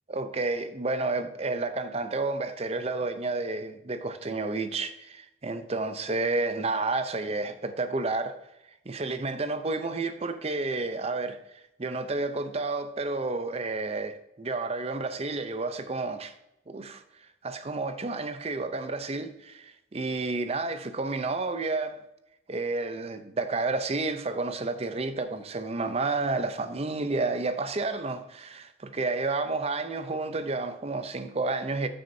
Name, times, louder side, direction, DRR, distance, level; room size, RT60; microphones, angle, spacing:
voice 1, 0.1-8.4 8.9-11.4 11.8-16.3 16.7-17.0 17.4-22.0 22.5-31.9, right 3 dB, 30° right, 0.6 m, -30 dB
12.5 x 6.4 x 2.7 m
head